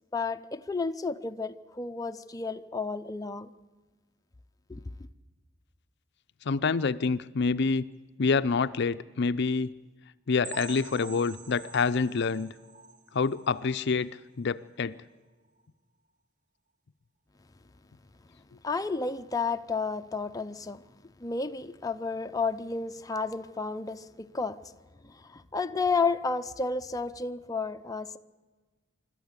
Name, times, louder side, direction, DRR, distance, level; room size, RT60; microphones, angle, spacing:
voice 1, 0.1-3.5 4.7-4.8 18.6-20.8 21.2-24.7 25.0-28.2, left 4 dB, 20° left, 0.6 m, -32 dB
voice 2, 6.5-7.9 8.2-9.7 10.3-12.5 13.1-14.1 14.4-15.0, left 4 dB, 60° left, 0.5 m, -27 dB
sound 1, 10.4-14.1 14.4-14.6 15.0-15.1 15.6-15.7, right 4 dB, 40° right, 1.1 m, -47 dB
25.5 x 12.5 x 8.2 m
head